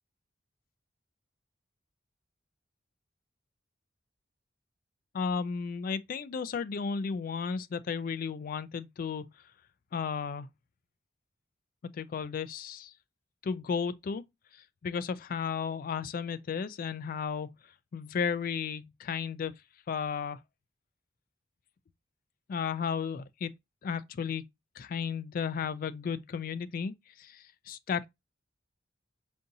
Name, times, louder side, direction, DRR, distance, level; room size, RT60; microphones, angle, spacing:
voice 1, 5.1-9.3 9.9-10.5 11.8-12.9 13.4-14.2 14.5-17.5 17.9-19.5 19.9-20.4 22.5-23.5 23.8-24.4 24.8-28.1, left 6 dB, 45° left, 0.3 m, -34 dB
4.8 x 2.7 x 2.6 m
head